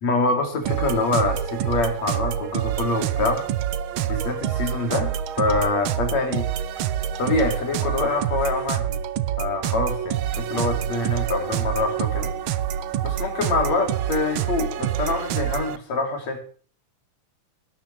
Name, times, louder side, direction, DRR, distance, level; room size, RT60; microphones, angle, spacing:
voice 1, 0.0-3.5 4.1-6.5 7.2-9.0 9.4-12.3 13.0-16.4, left 3 dB, 65° left, 4 dB, 4.7 m, -25 dB
sound 1, 0.6-15.8, right 10 dB, 75° right, 1.2 m, -27 dB
19.5 x 12.0 x 3.3 m, 0.43 s
omnidirectional pair, 3.4 m